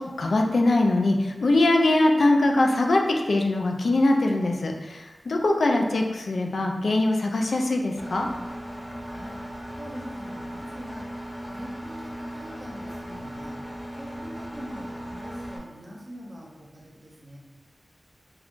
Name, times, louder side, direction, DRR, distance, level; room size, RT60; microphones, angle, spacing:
voice 1, 0.2-8.3, left 2 dB, 80° left, 2 dB, 0.3 m, -22 dB
Engine, 8.0-15.6, equal, 20° left, 0.7 m, -37 dB
voice 2, 9.0-9.4 9.8-11.1 11.5-13.6 13.9-17.4, equal, 45° right, -2 dB, 0.6 m, -43 dB
2.4 x 2.2 x 3.6 m, 1.1 s
wide cardioid pair, 75°, 0 cm